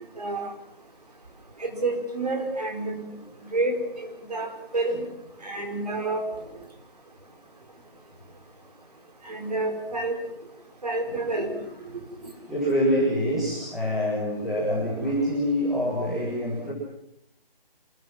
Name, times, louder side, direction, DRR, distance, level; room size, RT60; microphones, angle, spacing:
voice 1, 0.2-0.5 1.6-3.1 3.5-5.0 5.4-6.2 9.2-10.2 10.8-11.6 12.2-12.3, right 2 dB, 45° right, 3 dB, 4.7 m, -29 dB
voice 2, 12.5-16.7, equal, ahead, -12 dB, 1.6 m, -26 dB
27.0 x 22.0 x 6.1 m, 0.76 s
figure-of-eight pair, 175°, 29 cm